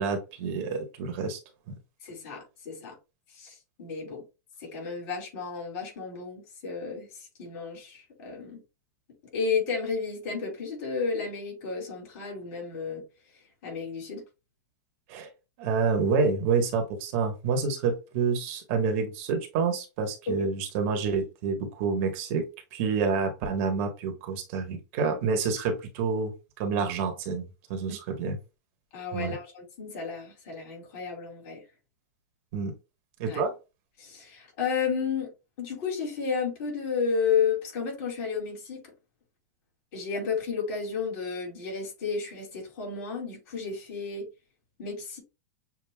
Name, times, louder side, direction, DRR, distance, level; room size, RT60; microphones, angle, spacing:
voice 1, 0.0-1.4 1.7-1.8 15.1-15.3 15.6-22.4 22.7-27.4 27.7-28.4 29.1-29.3 32.5-32.7 33.2-33.5, right 5 dB, 50° right, 1.2 m, -28 dB
voice 2, 2.0-2.9 3.3-4.2 4.6-8.6 9.3-13.0 13.6-14.2 20.3-20.5 28.9-31.6 33.2-33.4 34.0-35.3 35.6-38.9 39.9-44.3 44.8-45.2, left 5 dB, 45° left, 2.7 m, -32 dB
7.0 x 2.7 x 2.2 m
supercardioid pair, 150°, 9 cm